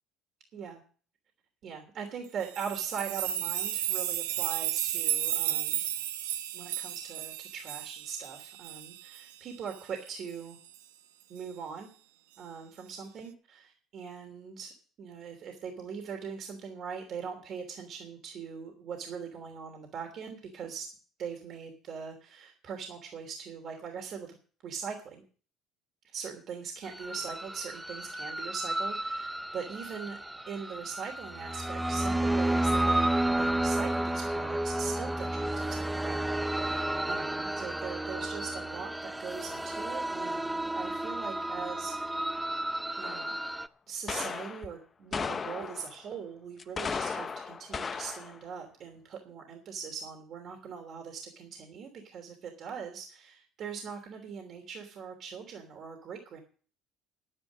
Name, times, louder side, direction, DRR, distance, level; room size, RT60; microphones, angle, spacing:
voice 1, 1.6-5.8 6.5-10.6 11.3-11.9 12.4-14.7 15.0-20.9 21.2-24.3 24.6-25.2 26.1-30.2 30.5-42.4 43.0-43.3 43.9-56.4, right 6 dB, 55° right, 3 dB, 3.1 m, -41 dB
sound 1, 2.4-9.2 9.7-9.8 10.1-10.2 10.7-10.8, right 12 dB, 90° right, 0.8 m, -33 dB
sound 2, 26.9-43.7, right 1 dB, 10° right, 0.6 m, -32 dB
sound 3, 43.0-43.5 44.1-44.7 45.1-46.0 46.6-48.4, left 5 dB, 35° left, 1.0 m, -36 dB
10.0 x 9.9 x 7.4 m, 0.41 s
supercardioid pair, 75°, 0 cm